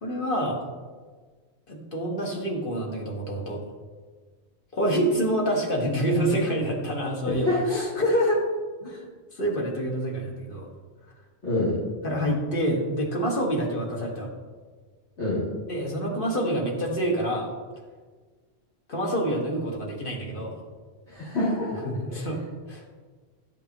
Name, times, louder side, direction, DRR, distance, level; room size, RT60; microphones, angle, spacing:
voice 1, 0.0-0.6 1.7-3.6 4.7-8.4 8.8-9.0 9.3-10.7 12.0-14.3 15.7-17.5 18.9-20.5 21.8-22.8, right 1 dB, 50° left, -1 dB, 1.8 m, -27 dB
voice 2, 7.4-7.8 11.4-11.7 15.2-15.4 21.1-21.7, left 2 dB, 90° left, -12 dB, 3.1 m, -25 dB
12.0 x 6.9 x 3.0 m, 1.5 s
omnidirectional pair, 1.1 m